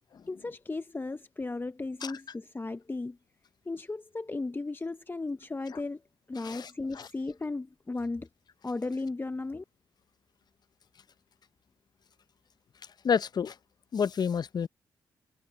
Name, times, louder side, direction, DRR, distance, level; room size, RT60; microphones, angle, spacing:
voice 1, 0.3-3.2 3.7-6.0 6.3-8.3 8.6-9.6, left 3 dB, 25° left, 0.7 m, -35 dB
voice 2, 13.0-13.5 13.9-14.7, left 6 dB, 55° left, 0.8 m, -29 dB
hypercardioid pair, 40°, 8 cm